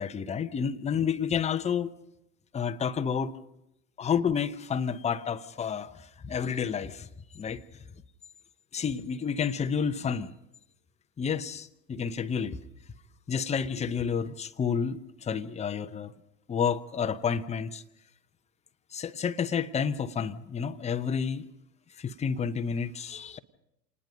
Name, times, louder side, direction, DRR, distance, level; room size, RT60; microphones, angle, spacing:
voice 1, 0.0-1.9 2.5-3.4 4.0-7.1 7.3-7.6 8.7-10.3 11.2-12.6 13.3-16.1 16.5-17.8 18.9-21.5 22.0-23.4, left 7 dB, 15° left, 0.9 m, -30 dB
27.0 x 19.5 x 5.4 m
figure-of-eight pair, 80°, 50 cm